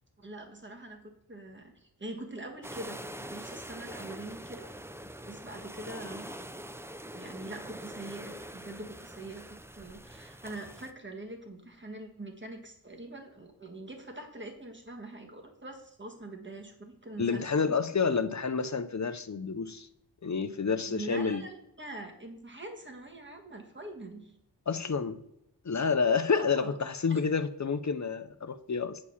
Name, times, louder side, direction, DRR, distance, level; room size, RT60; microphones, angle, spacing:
voice 1, 0.2-4.7 5.3-6.5 7.1-17.8 20.8-24.3 26.3-26.7 27.1-27.2, right 2 dB, 25° right, 1.6 m, -44 dB
sound 1, 2.6-10.9, right 1 dB, 5° right, 0.5 m, -44 dB
voice 2, 17.2-19.9 20.2-21.4 24.7-25.2 25.6-29.0, left 5 dB, 45° left, 0.6 m, -29 dB
8.6 x 4.6 x 7.1 m
wide cardioid pair, 75°, 41 cm